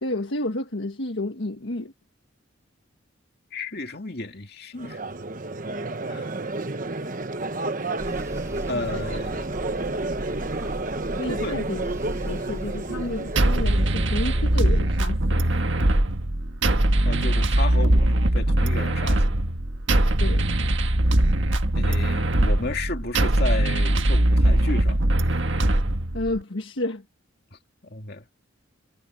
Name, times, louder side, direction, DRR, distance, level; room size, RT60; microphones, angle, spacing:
voice 1, 0.0-1.9 11.2-11.9 12.2-15.5 20.2-20.4 26.1-27.0, left 1 dB, 65° left, 1.5 m, -30 dB
voice 2, 3.5-5.0 6.1-6.3 8.7-9.5 11.2-11.6 17.0-19.4 21.7-25.0 27.5-28.2, left 2 dB, 50° left, 2.3 m, -33 dB
Crowd, 4.8-14.9, right 2 dB, 40° right, 1.1 m, -31 dB
sound 1, 8.0-13.6, equal, 15° right, 1.1 m, -36 dB
sound 2, 13.4-26.4, right 1 dB, 65° right, 1.6 m, -21 dB
head